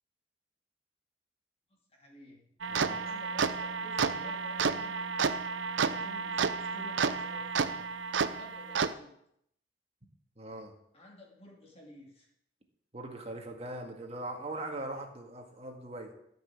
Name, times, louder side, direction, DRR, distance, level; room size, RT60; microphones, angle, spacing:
voice 1, 1.7-5.1 5.8-7.9 8.3-9.2 10.9-12.3, left 1 dB, 35° left, -2 dB, 2.7 m, -53 dB
sound 1, 2.6-8.9, right 5 dB, 85° right, 0.6 m, -31 dB
voice 2, 2.7-3.0 10.4-10.7 12.9-16.1, right 1 dB, 35° right, 2 dB, 2.0 m, -40 dB
13.0 x 6.1 x 8.6 m, 0.73 s
head